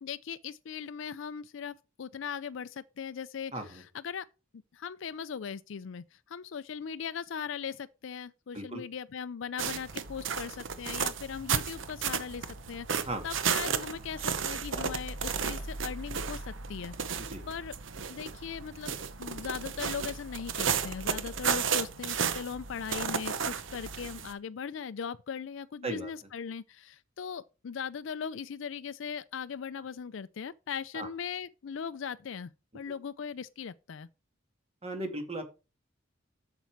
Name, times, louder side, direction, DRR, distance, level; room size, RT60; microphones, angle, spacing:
voice 1, 0.0-4.3 4.7-17.7 18.1-34.1, left 7 dB, 65° left, 0.4 m, -39 dB
voice 2, 3.5-3.8 8.5-8.8 13.1-13.3 17.3-17.4 25.8-26.1 30.9-31.1 34.8-35.4, right 2 dB, 30° right, 2.0 m, -36 dB
sound 1, 9.6-24.3, right 6 dB, 70° right, 0.9 m, -33 dB
8.4 x 6.9 x 4.6 m
head